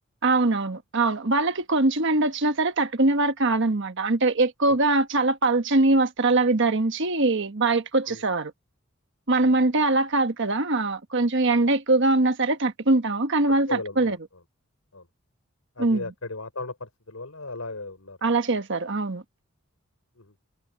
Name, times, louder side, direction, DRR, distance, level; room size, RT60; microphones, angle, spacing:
voice 1, 0.2-8.5 9.3-14.2 15.8-16.0 18.2-19.2, right 2 dB, 60° right, 1.3 m, -22 dB
voice 2, 13.5-14.2 14.9-15.1 15.7-18.2 20.2-20.3, left 3 dB, 80° left, 4.7 m, -37 dB
head